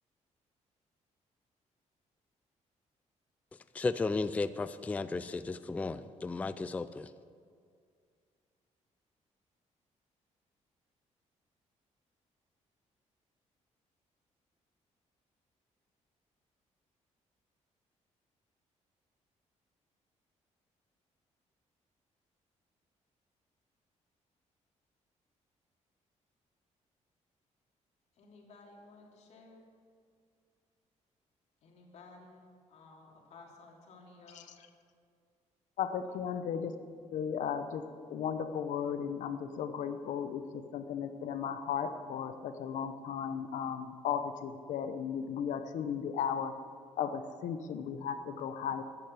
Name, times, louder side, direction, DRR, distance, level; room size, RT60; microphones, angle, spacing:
voice 1, 3.7-7.1, left 3 dB, 10° left, 0.3 m, -34 dB
voice 2, 28.1-29.6 31.6-34.6, left 3 dB, 65° left, 3.1 m, -55 dB
voice 3, 35.8-36.7 37.1-46.5 47.0-48.8, left 7 dB, 80° left, 1.0 m, -35 dB
14.0 x 10.5 x 8.1 m
cardioid pair, 165°, 13 cm